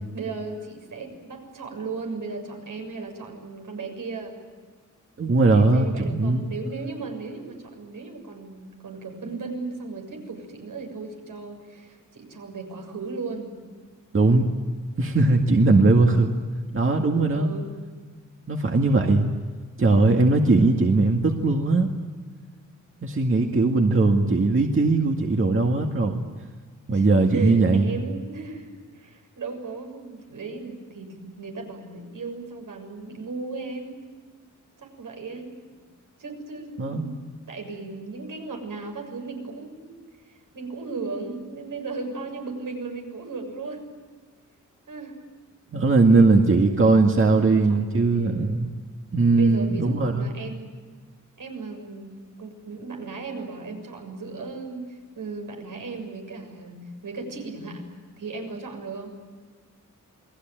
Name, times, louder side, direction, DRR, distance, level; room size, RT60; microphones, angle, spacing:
voice 1, 0.1-4.4 5.5-13.5 17.3-17.7 26.9-28.7 28.9-34.0 34.8-35.5 36.2-37.1 37.5-40.0 40.3-43.8 44.9-45.2 46.0-46.7 47.4-48.4 49.3-50.7 51.4-57.9 58.2-59.1, right 4 dB, 80° right, 3 dB, 7.0 m, -36 dB
voice 2, 5.2-6.4 14.1-14.5 15.0-16.4 16.7-17.5 18.5-19.3 19.8-21.9 23.0-26.2 26.9-27.9 36.8-37.0 45.7-48.7 49.1-50.3, right 3 dB, 40° right, 2 dB, 2.0 m, -19 dB
29.0 x 21.5 x 9.1 m, 1.5 s
wide cardioid pair, 150°, 31 cm